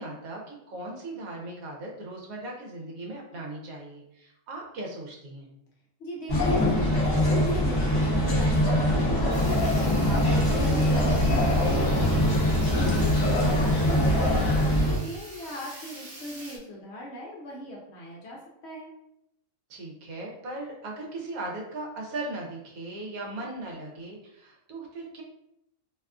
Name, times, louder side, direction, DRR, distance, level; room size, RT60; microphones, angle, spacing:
voice 1, 0.0-5.5 12.9-13.6 19.7-25.2, right 2 dB, 85° right, -1 dB, 1.1 m, -38 dB
voice 2, 6.0-12.2 12.8-18.9, left 1 dB, 65° left, -3 dB, 0.7 m, -39 dB
sound 1, 6.3-15.0, left 1 dB, 35° left, 0.3 m, -23 dB
Sawing, 9.3-16.6, right 1 dB, 50° right, 0.7 m, -45 dB
2.7 x 2.3 x 2.3 m, 0.80 s
omnidirectional pair, 1.5 m